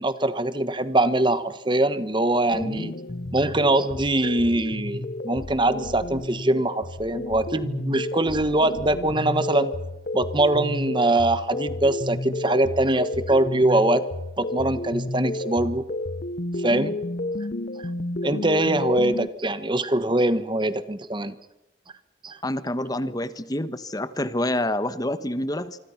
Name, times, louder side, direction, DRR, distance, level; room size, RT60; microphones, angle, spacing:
voice 1, 0.0-2.9 3.3-9.7 10.1-14.0 14.4-15.8 16.6-17.0 17.8-17.9 18.2-21.3 22.2-22.4, right 1 dB, 25° right, 13 dB, 1.3 m, -23 dB
sound 1, 2.5-19.3, left 1 dB, 45° left, 0.7 m, -31 dB
voice 2, 22.4-25.8, left 1 dB, 20° left, 13 dB, 1.2 m, -27 dB
26.5 x 24.5 x 5.8 m, 0.96 s
head